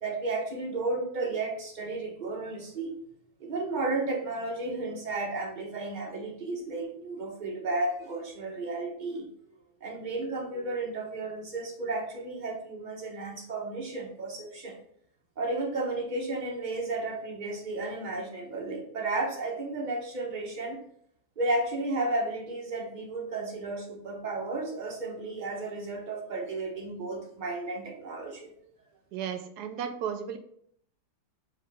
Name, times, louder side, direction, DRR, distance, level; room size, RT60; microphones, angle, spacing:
voice 1, 0.0-2.9 3.4-9.3 9.8-14.8 15.4-20.8 21.4-28.5, right 2 dB, 35° right, 0 dB, 0.8 m, -33 dB
voice 2, 29.1-30.4, right 8 dB, 75° right, 8 dB, 1.1 m, -34 dB
4.9 x 3.0 x 3.4 m, 0.67 s
omnidirectional pair, 1.8 m